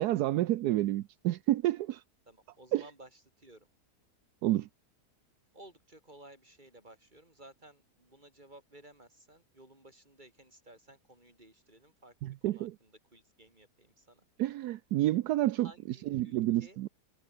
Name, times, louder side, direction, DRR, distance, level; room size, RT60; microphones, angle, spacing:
voice 1, 0.0-2.0 2.7-2.8 4.4-4.7 12.2-12.7 14.4-15.7 16.1-16.9, right 15 dB, 75° right, 1.2 m, -29 dB
voice 2, 2.3-3.7 5.5-14.3 15.6-16.8, right 1 dB, 30° right, 5.8 m, -56 dB
omnidirectional pair, 1.7 m